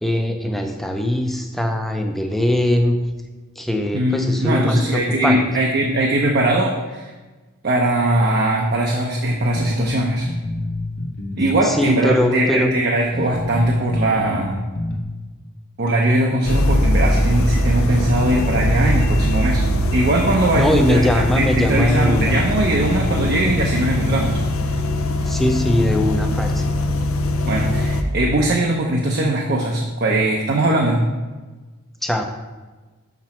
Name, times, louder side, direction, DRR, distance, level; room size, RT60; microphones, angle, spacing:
voice 1, 0.0-3.0 3.6-5.4 11.6-12.7 20.5-22.4 23.0-23.8 24.7-26.6 32.0-32.2, left 1 dB, ahead, 4 dB, 0.6 m, -21 dB
voice 2, 3.9-7.1 7.6-10.3 11.4-14.6 15.8-19.6 19.9-24.4 27.5-31.0, right 1 dB, 50° right, 0 dB, 0.7 m, -20 dB
sound 1, 9.5-11.6 11.9-12.0 12.6-12.7 13.1-15.0, left 2 dB, 60° left, 0.9 m, -28 dB
sound 2, 16.4-28.0, left 1 dB, 75° left, 0.7 m, -21 dB
6.0 x 6.0 x 4.3 m, 1.2 s
head